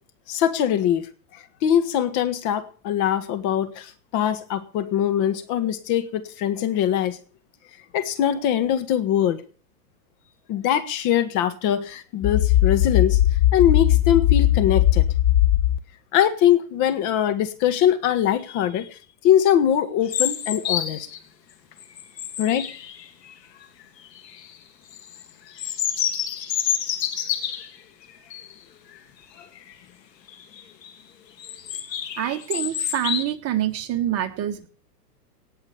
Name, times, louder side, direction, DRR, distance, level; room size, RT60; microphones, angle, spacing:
voice 1, 0.3-1.0 1.3-7.2 7.9-9.4 10.5-13.2 13.5-15.0 16.1-21.1 22.4-22.7, left 10 dB, 35° left, 1.7 m, -22 dB
sound 1, 12.2-15.8, left 13 dB, 20° left, 0.8 m, -18 dB
sound 2, 20.1-21.2 21.7-23.3 24.0-24.5 24.9-27.8 28.3-28.5 28.9-29.0 29.4-29.7 30.3-30.9 31.4-33.2, left 9 dB, 75° left, 2.7 m, -28 dB
voice 2, 32.2-34.7, right 11 dB, 30° right, 1.9 m, -26 dB
18.5 x 6.5 x 7.0 m
hypercardioid pair, 125°, 49 cm